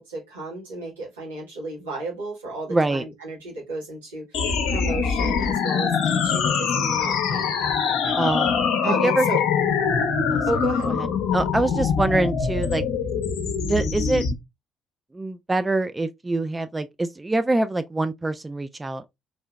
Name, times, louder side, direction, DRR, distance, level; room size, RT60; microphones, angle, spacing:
voice 1, 0.0-8.2 8.8-9.4 10.5-10.9, right 2 dB, 85° right, 1.4 m, -33 dB
voice 2, 2.7-3.0 8.2-9.3 10.3-10.4 10.8-12.8 13.6-14.2 15.1-19.1, right 2 dB, 20° right, 0.4 m, -25 dB
sound 1, 4.3-14.3, left 6 dB, 65° left, 0.6 m, -23 dB
4.1 x 2.7 x 2.3 m
figure-of-eight pair, 45°, 0 cm